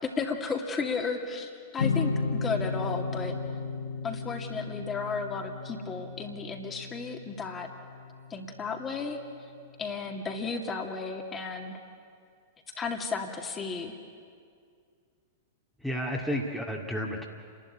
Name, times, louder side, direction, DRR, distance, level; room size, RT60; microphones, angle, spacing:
voice 1, 0.0-3.4 4.0-7.7 8.3-9.2 9.8-11.8 12.8-13.9, left 4 dB, 20° left, 2 dB, 2.5 m, -34 dB
sound 1, 1.8-9.0, left 4 dB, 65° left, 1.0 m, -34 dB
voice 2, 15.8-17.3, equal, ahead, -2 dB, 2.2 m, -31 dB
29.5 x 12.0 x 9.8 m, 2.2 s
figure-of-eight pair, 100°, 0 cm